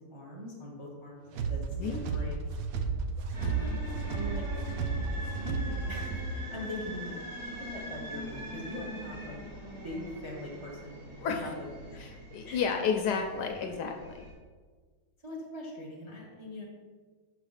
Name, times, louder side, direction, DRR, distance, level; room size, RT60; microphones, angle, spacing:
voice 1, 0.0-2.3 2.8-3.0 4.1-4.5 5.3-5.6 5.9-12.0 12.4-12.6 15.2-16.7, left 1 dB, 25° right, -3 dB, 0.6 m, -42 dB
sound 1, 1.3-6.4, right 4 dB, 75° right, 0.8 m, -33 dB
voice 2, 1.7-2.3 3.4-3.8 11.2-11.4 12.0-14.3, left 6 dB, 75° left, 4 dB, 1.0 m, -32 dB
sound 2, 3.3-14.3, equal, 45° right, 1.6 m, -43 dB
5.9 x 4.9 x 4.0 m, 1.5 s
omnidirectional pair, 2.0 m